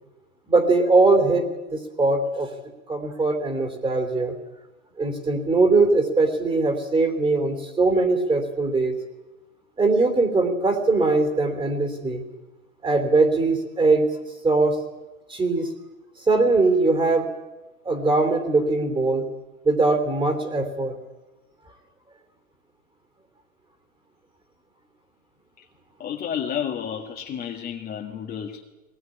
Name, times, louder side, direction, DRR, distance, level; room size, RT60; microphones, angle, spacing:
voice 1, 0.5-1.4 1.7-2.5 2.9-4.3 5.0-8.9 9.8-12.2 12.8-14.1 14.4-14.8 15.3-15.7 16.3-17.3 17.8-19.2 19.6-20.9, right 3 dB, 10° right, 7 dB, 3.1 m, -21 dB
voice 2, 26.0-28.6, left 8 dB, 20° left, 1 dB, 1.9 m, -31 dB
21.0 x 19.5 x 9.9 m, 1.1 s
hypercardioid pair, 130°, 42 cm